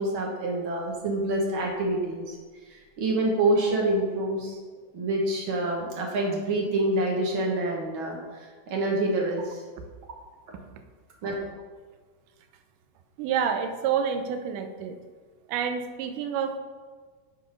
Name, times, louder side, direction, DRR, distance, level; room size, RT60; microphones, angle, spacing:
voice 1, 0.0-2.3 2.6-4.6 4.9-9.6 11.2-11.3, right 2 dB, 55° right, -1 dB, 1.5 m, -27 dB
voice 2, 13.2-15.0 15.5-16.6, right 7 dB, 85° right, 6 dB, 2.2 m, -28 dB
9.6 x 3.9 x 5.1 m, 1.5 s
omnidirectional pair, 3.6 m